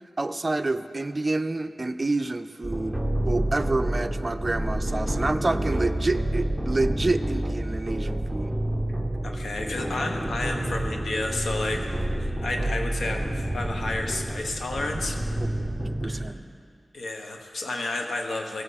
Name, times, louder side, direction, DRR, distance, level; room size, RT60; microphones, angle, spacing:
voice 1, 0.2-8.5 15.4-15.5 16.0-16.4, right 2 dB, 30° right, 11 dB, 0.4 m, -28 dB
sound 1, 2.6-16.3, right 1 dB, ahead, 1.1 m, -29 dB
voice 2, 9.2-12.1 12.4-15.2 16.0-16.3 16.9-18.6, left 2 dB, 80° left, 3 dB, 1.1 m, -31 dB
17.5 x 7.8 x 4.1 m, 2.2 s
wide cardioid pair, 80°, 0 cm